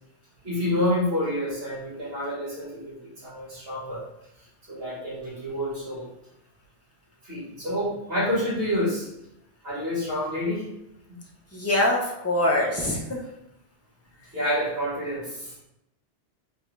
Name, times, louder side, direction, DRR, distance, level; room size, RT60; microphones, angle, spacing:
voice 1, 0.4-4.0 4.7-6.1 7.2-9.1 9.6-10.7 11.1-11.2 14.3-15.5, left 1 dB, 55° right, -7 dB, 2.1 m, -28 dB
voice 2, 11.5-13.2, left 1 dB, 15° left, -3 dB, 0.8 m, -24 dB
3.8 x 3.5 x 3.4 m, 0.84 s
omnidirectional pair, 1.2 m